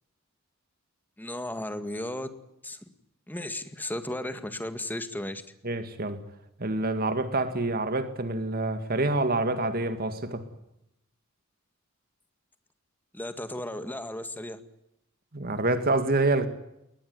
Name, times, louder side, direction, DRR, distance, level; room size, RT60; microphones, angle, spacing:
voice 1, 1.2-2.3 2.6-2.8 3.3-5.4 13.1-14.6, left 1 dB, 10° left, 1.9 m, -35 dB
voice 2, 5.6-6.2 6.6-10.4 15.3-16.5, right 2 dB, 45° right, 2.0 m, -27 dB
21.5 x 20.0 x 9.4 m
head